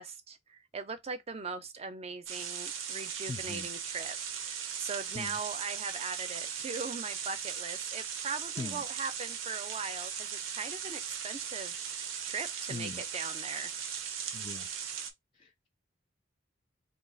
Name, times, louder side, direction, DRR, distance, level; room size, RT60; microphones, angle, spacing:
voice 1, 0.0-13.7 14.1-14.2, right 4 dB, 30° right, 0.5 m, -40 dB
sound 1, 2.3-15.1, right 7 dB, 85° right, 0.6 m, -38 dB
voice 2, 3.3-3.7 5.1-5.3 8.6-8.8 12.7-13.0 14.3-14.7 15.4-15.7, left 3 dB, 25° left, 0.3 m, -40 dB
2.7 x 2.4 x 3.8 m
head